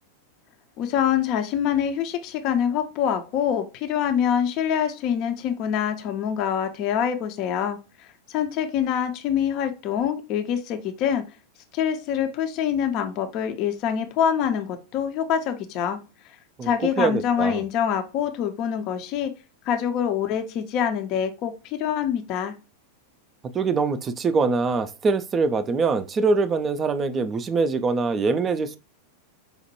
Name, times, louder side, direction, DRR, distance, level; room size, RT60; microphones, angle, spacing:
voice 1, 0.8-11.2 11.7-16.0 16.6-19.3 19.7-22.5, left 8 dB, 40° left, 0.5 m, -25 dB
voice 2, 16.6-17.6 23.5-28.8, right 4 dB, 25° right, 0.3 m, -23 dB
5.0 x 2.1 x 3.0 m
figure-of-eight pair, 90°, 0 cm